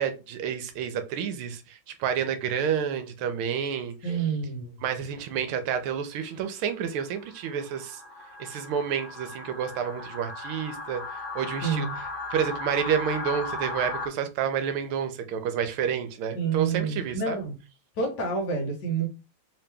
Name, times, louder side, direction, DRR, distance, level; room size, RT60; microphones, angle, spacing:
voice 1, 0.0-3.9 4.8-8.0 8.4-11.0 11.3-11.9 12.3-17.4, right 8 dB, 80° right, 1.5 m, -29 dB
voice 2, 4.0-4.7 11.6-11.9 16.3-17.5 18.0-19.1, right 5 dB, 60° left, 1.5 m, -28 dB
sound 1, 5.5-5.7 6.3-14.1, left 3 dB, 40° left, 0.7 m, -37 dB
3.5 x 2.9 x 3.3 m
omnidirectional pair, 2.3 m